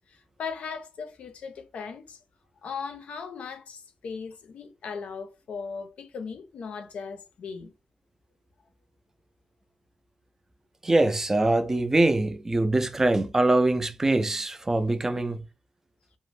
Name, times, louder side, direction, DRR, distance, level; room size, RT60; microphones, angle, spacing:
voice 1, 0.1-2.2 2.6-7.7, left 5 dB, 70° left, 0.5 m, -38 dB
voice 2, 10.8-15.4, right 2 dB, 20° right, 0.4 m, -23 dB
2.5 x 2.1 x 3.2 m
wide cardioid pair, 120°, 2 cm